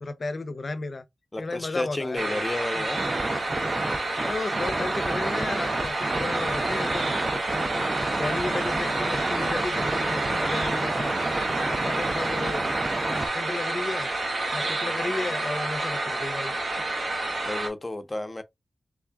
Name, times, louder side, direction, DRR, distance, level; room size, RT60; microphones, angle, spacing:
voice 1, 0.0-1.0 1.4-2.4 2.8-2.9 4.2-7.2 7.7-7.9 8.1-11.2 11.6-12.6 13.0-14.1 14.5-16.5, left 3 dB, 60° left, 0.6 m, -34 dB
voice 2, 1.3-3.1 17.4-18.4, left 2 dB, 30° left, 0.8 m, -32 dB
sound 1, 2.2-17.7, right 2 dB, 80° right, 1.3 m, -29 dB
sound 2, 3.0-13.3, right 2 dB, 45° right, 0.6 m, -30 dB
3.6 x 2.4 x 3.4 m
cardioid pair, 50°, 0 cm